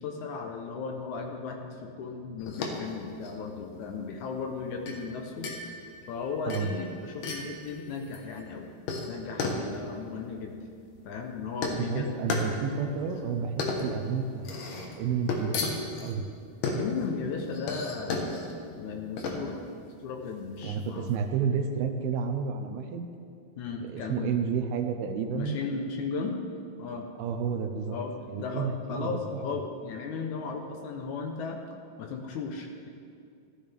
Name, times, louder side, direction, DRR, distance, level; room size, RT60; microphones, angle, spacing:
voice 1, 0.0-5.5 6.1-8.7 9.1-10.6 11.1-12.2 16.8-18.3 18.8-19.6 20.0-21.1 23.6-24.5 25.3-26.4 26.8-27.1 27.9-31.6 32.0-32.9, left 4 dB, 80° left, 2 dB, 1.7 m, -36 dB
Indoor Wine Glass Clink Various, 2.4-21.2, left 3 dB, 65° left, 2.5 m, -35 dB
voice 2, 11.8-16.3 20.6-23.1 23.8-25.6 27.2-28.0 28.3-29.2, right 6 dB, 80° right, 6 dB, 2.4 m, -31 dB
16.0 x 13.0 x 3.5 m, 2.3 s
omnidirectional pair, 4.7 m